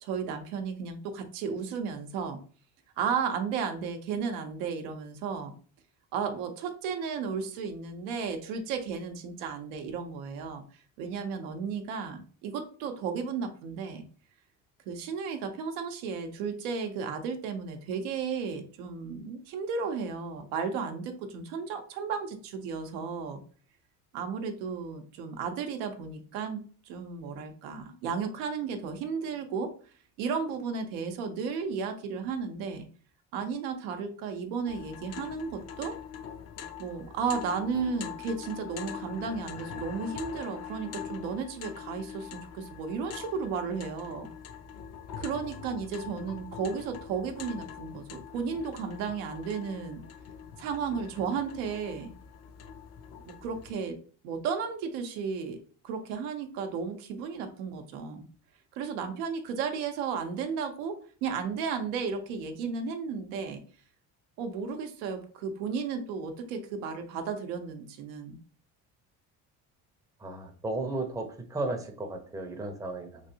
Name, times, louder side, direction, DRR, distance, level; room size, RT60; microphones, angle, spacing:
voice 1, 0.0-2.4 3.0-5.5 6.1-10.6 11.0-14.0 14.9-23.4 24.1-29.7 30.2-32.9 33.3-36.0 36.8-44.3 45.2-50.0 50.6-52.1 53.2-54.0 54.2-55.6 55.8-58.3 58.7-63.6 64.4-68.4, right 5 dB, 85° right, 6 dB, 0.7 m, -34 dB
sound 1, 34.7-53.7, left 8 dB, 40° left, 0.4 m, -43 dB
voice 2, 70.2-73.2, right 2 dB, 10° right, 4 dB, 0.5 m, -34 dB
3.2 x 2.5 x 2.7 m, 0.42 s
supercardioid pair, 85°, 42 cm